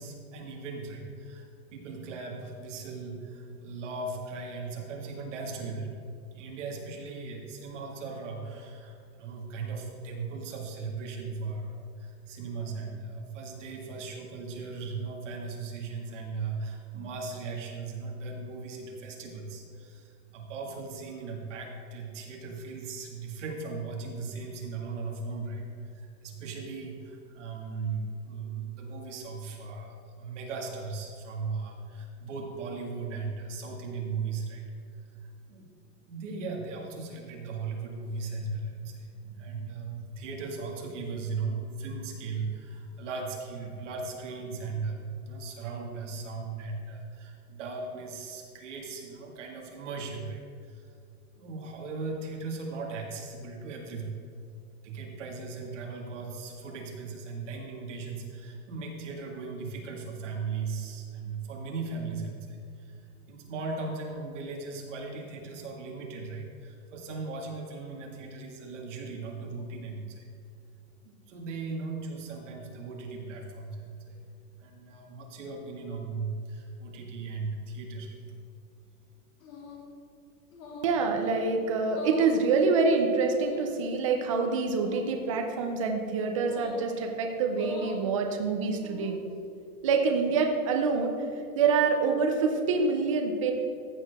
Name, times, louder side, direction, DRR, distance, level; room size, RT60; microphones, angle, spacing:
voice 1, 0.0-6.0 6.3-25.6 25.9-34.6 35.2-35.7 36.1-50.9 51.3-54.1 54.8-63.0 63.3-70.3 71.0-74.1 74.6-78.2, right 4 dB, 55° right, 0 dB, 1.9 m, -37 dB
sound 1, 79.4-79.9 80.5-81.0 81.8-82.4 83.3-83.9 84.7-85.1 86.4-86.9 87.5-88.0 88.7-89.3, left 3 dB, 65° left, 2.5 m, -43 dB
voice 2, 80.8-89.2 89.8-91.1 91.5-93.5, right 4 dB, 25° right, 3 dB, 0.4 m, -26 dB
14.5 x 6.5 x 3.5 m, 2.5 s
supercardioid pair, 170°, 44 cm